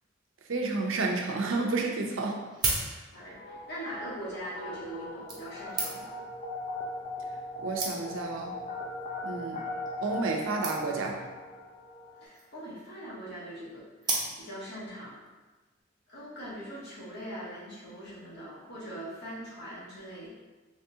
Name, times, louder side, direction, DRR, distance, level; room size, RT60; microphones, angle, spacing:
voice 1, 0.5-2.4 7.6-8.6 9.2-9.6 10.0-11.2, right 3 dB, 90° right, 1 dB, 0.6 m, -30 dB
sound 1, 2.5-3.4 4.3-4.5 5.3-6.3 7.1-7.2 7.4-7.5 7.8-8.3 9.0-9.2 9.5-9.6 9.8-9.9 10.1-10.3 10.6-11.1 12.1-12.6 14.0-14.7 15.3-15.4, right 3 dB, 20° right, 0.6 m, -34 dB
voice 2, 3.1-6.1 12.2-15.1 16.1-20.3, right 1 dB, 55° left, -7 dB, 1.3 m, -41 dB
sound 2, 3.3-12.2, left 1 dB, 40° left, 0.4 m, -40 dB
3.6 x 3.2 x 2.7 m, 1.2 s
head